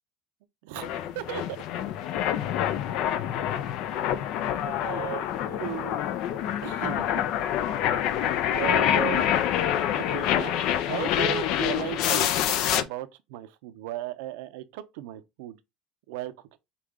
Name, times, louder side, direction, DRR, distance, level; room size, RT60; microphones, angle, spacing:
voice 1, 0.6-1.6 2.8-3.5 4.6-6.1 6.6-7.2 8.5-9.4 10.0-10.6 10.9-15.6 16.1-16.6, right 14 dB, 85° right, 0.5 m, -36 dB
sound 1, 0.8-12.8, left 10 dB, 65° left, 0.4 m, -26 dB
4.9 x 2.3 x 3.6 m
supercardioid pair, 115°, 0 cm